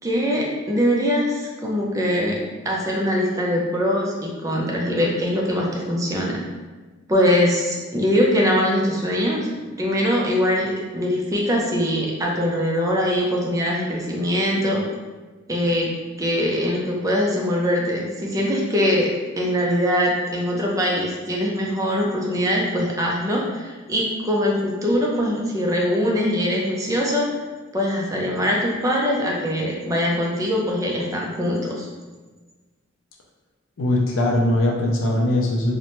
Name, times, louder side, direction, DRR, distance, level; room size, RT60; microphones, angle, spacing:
voice 1, 0.0-2.4 2.6-6.4 7.1-9.5 9.8-14.8 15.5-15.9 16.2-19.1 19.4-27.3 27.7-31.9, equal, 15° right, -2 dB, 0.4 m, -22 dB
voice 2, 33.8-35.7, left 1 dB, 80° left, -1 dB, 0.4 m, -20 dB
2.8 x 2.1 x 2.9 m, 1.3 s
head